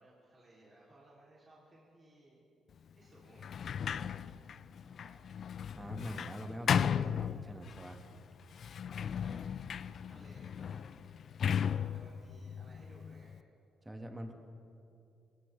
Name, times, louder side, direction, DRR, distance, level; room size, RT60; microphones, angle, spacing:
voice 1, 0.0-2.4 2.9-4.2 5.0-5.2 8.8-9.4 10.1-10.9 11.4-13.4, right 1 dB, 35° right, -6 dB, 3.3 m, -60 dB
Sliding door, 3.4-7.9 8.5-13.4, left 8 dB, 55° left, 0.3 m, -36 dB
voice 2, 5.7-8.1 13.8-14.3, equal, 10° right, 4 dB, 1.7 m, -44 dB
21.0 x 15.5 x 3.4 m, 2.7 s
cardioid pair, 90°, 0 cm